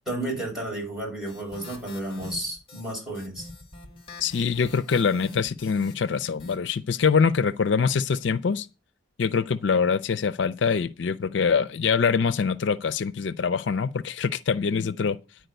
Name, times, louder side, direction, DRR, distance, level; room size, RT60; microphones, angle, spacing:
voice 1, 0.1-3.5, right 1 dB, ahead, 6.1 m, -32 dB
sound 1, 1.3-6.6, left 2 dB, 30° left, 2.0 m, -44 dB
voice 2, 4.2-8.7 9.2-15.2, left 5 dB, 70° left, 0.4 m, -24 dB
10.0 x 4.6 x 7.9 m
head